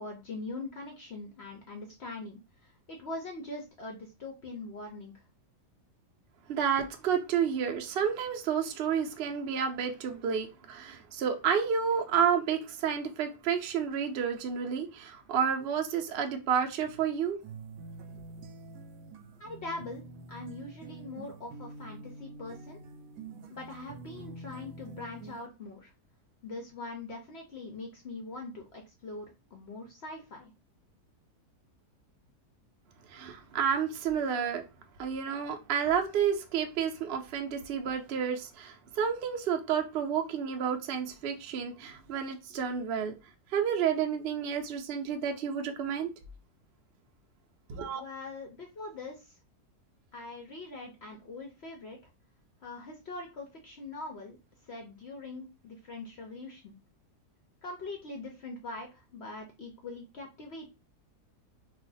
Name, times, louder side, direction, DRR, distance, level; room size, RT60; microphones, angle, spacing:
voice 1, 0.0-5.1 19.4-20.0 20.3-22.8 23.5-25.9 26.4-30.5 47.9-49.3 50.1-52.0 52.6-54.4 54.7-56.8 57.6-60.7, left 2 dB, 65° left, 0.6 m, -42 dB
voice 2, 6.5-17.4 33.1-34.6 35.0-43.1 43.5-46.1 47.7-48.0, right 7 dB, 85° right, 0.5 m, -30 dB
sound 1, 17.4-25.5, right 2 dB, 70° right, 0.9 m, -46 dB
2.5 x 2.4 x 3.9 m
omnidirectional pair, 1.7 m